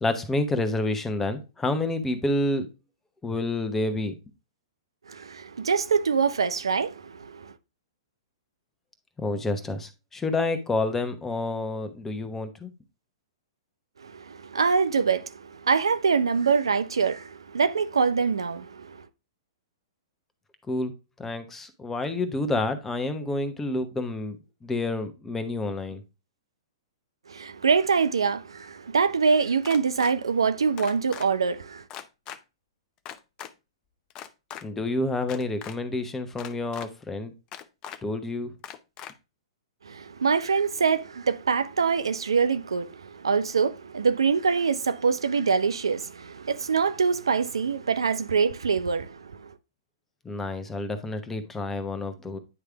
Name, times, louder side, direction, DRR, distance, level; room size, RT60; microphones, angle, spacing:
voice 1, 0.0-2.7 3.2-4.1 9.2-12.7 20.7-20.9 21.2-24.4 24.6-26.0 34.6-37.3 38.0-38.5 50.2-52.4, left 2 dB, 10° left, 1.0 m, -29 dB
voice 2, 5.1-7.5 14.0-19.1 27.3-31.8 39.9-49.5, right 5 dB, 80° right, 0.6 m, -24 dB
sound 1, 29.6-30.1 30.8-31.3 31.9-32.4 33.1-33.5 34.1-34.6 35.2-35.8 36.4-36.9 37.5-38.0 38.6-39.1, left 10 dB, 30° left, 0.6 m, -40 dB
9.7 x 3.3 x 3.4 m
hypercardioid pair, 115°, 3 cm